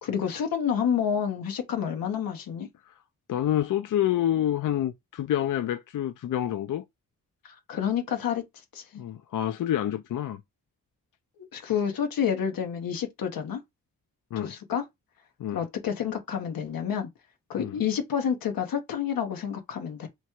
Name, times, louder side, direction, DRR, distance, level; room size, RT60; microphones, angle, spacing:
voice 1, 0.0-2.7 7.4-8.4 8.7-8.8 11.4-13.6 14.4-14.8 15.5-17.1 17.5-20.1, left 8 dB, 90° left, 0.9 m, -29 dB
voice 2, 3.3-6.8 9.0-10.4 14.3-14.5 15.4-15.6 17.6-17.8, left 11 dB, 65° left, 0.5 m, -28 dB
3.1 x 2.3 x 4.3 m
cardioid pair, 65°, 34 cm